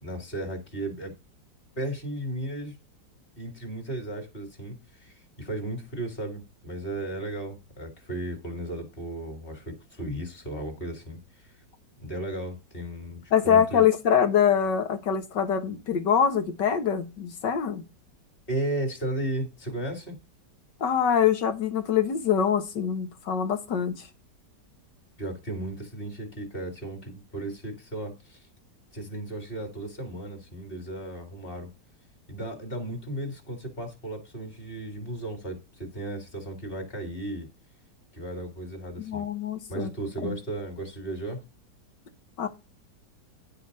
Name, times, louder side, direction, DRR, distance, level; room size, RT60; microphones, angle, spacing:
voice 1, 0.0-1.1 1.8-2.8 3.4-11.2 12.0-13.8 18.5-20.2 25.2-28.5 28.9-31.7 32.3-37.5 38.1-39.3 39.7-41.4, right 1 dB, 30° left, 2.9 m, -35 dB
voice 2, 13.3-17.8 20.8-24.1 39.0-39.9 40.2-40.4 42.4-42.5, left 8 dB, 75° left, 2.1 m, -24 dB
10.5 x 5.2 x 5.3 m
omnidirectional pair, 1.9 m